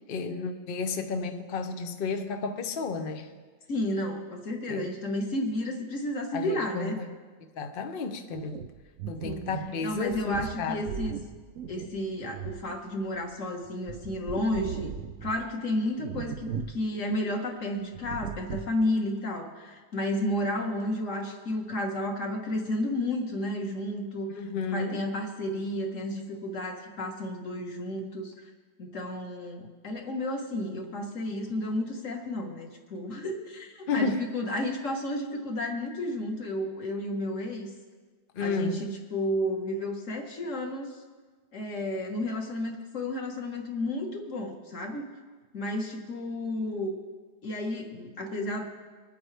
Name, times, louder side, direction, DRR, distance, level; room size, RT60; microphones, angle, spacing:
voice 1, 0.1-3.3 4.7-4.9 6.3-7.1 7.5-8.7 9.1-10.8 24.3-25.0 33.9-34.3 38.3-38.8, left 4 dB, 75° left, 7 dB, 0.5 m, -32 dB
voice 2, 3.7-7.0 9.2-9.5 9.8-11.2 11.7-14.9 15.2-24.4 24.7-28.5 28.8-37.7 38.4-41.0 41.5-45.1 45.5-47.0 47.4-48.6, left 1 dB, 45° left, 2 dB, 1.7 m, -32 dB
sound 1, 8.3-13.3 13.6-15.5 16.0-16.8 17.1-17.2 17.9-18.8, right 8 dB, 85° right, 0.7 m, -38 dB
22.0 x 8.7 x 3.4 m, 1.4 s
omnidirectional pair, 2.0 m